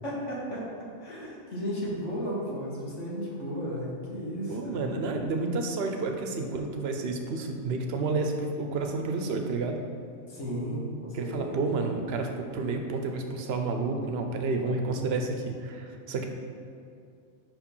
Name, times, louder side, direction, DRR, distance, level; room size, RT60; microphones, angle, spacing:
voice 1, 0.0-0.6 1.0-4.9 10.3-11.5, equal, 85° left, -5 dB, 1.8 m, -34 dB
voice 2, 4.5-9.8 11.1-16.3, right 3 dB, 65° right, 4 dB, 0.9 m, -30 dB
5.3 x 5.0 x 5.4 m, 2.4 s
omnidirectional pair, 1.2 m